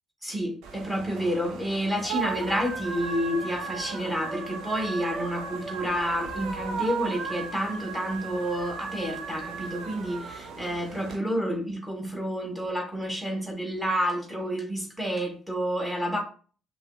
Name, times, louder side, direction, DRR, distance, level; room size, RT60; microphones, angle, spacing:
voice 1, 0.2-16.2, equal, 5° right, 2 dB, 1.3 m, -29 dB
sound 1, 0.6-11.2, right 5 dB, 60° right, 0.6 m, -36 dB
5.5 x 2.3 x 2.6 m, 0.41 s
figure-of-eight pair, 45°, 0 cm